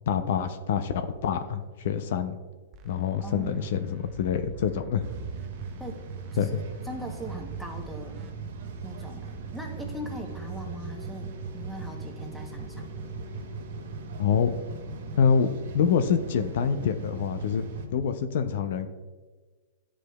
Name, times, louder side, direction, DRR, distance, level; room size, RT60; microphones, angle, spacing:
voice 1, 0.1-2.4 2.8-5.1 6.4-6.6 14.2-14.5 15.2-15.5 15.7-18.9, left 7 dB, 65° left, 9 dB, 0.4 m, -26 dB
sound 1, 2.7-8.3, right 6 dB, 30° right, 0.5 m, -46 dB
voice 2, 3.2-3.6 5.8-6.0 6.3-8.2 8.8-12.9, equal, ahead, 2 dB, 0.8 m, -40 dB
sound 2, 5.0-17.9, right 4 dB, 65° right, 0.9 m, -38 dB
10.5 x 4.9 x 2.3 m, 1.4 s
hypercardioid pair, 150°, 0 cm